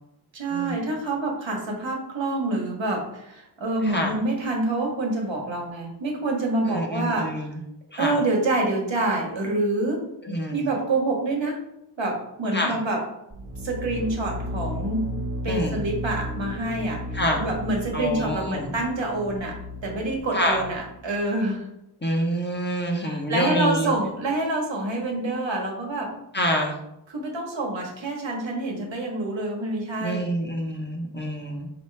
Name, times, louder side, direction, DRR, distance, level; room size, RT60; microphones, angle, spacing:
voice 1, 0.3-7.5 8.0-10.0 10.5-11.6 12.0-13.0 13.6-15.1 15.4-19.6 19.8-21.7 23.0-26.1 27.1-30.3, right 2 dB, 75° right, 0 dB, 1.1 m, -27 dB
voice 2, 3.8-4.1 6.7-7.6 7.9-8.2 10.2-10.7 12.5-12.8 15.5-15.8 17.1-17.5 17.9-18.8 20.3-20.6 22.0-23.9 26.3-26.8 30.0-31.7, equal, 25° left, 1 dB, 0.8 m, -26 dB
sound 1, 13.3-20.9, equal, 25° right, 1.0 m, -34 dB
4.3 x 2.8 x 3.3 m, 0.83 s
cardioid pair, 55°, 45 cm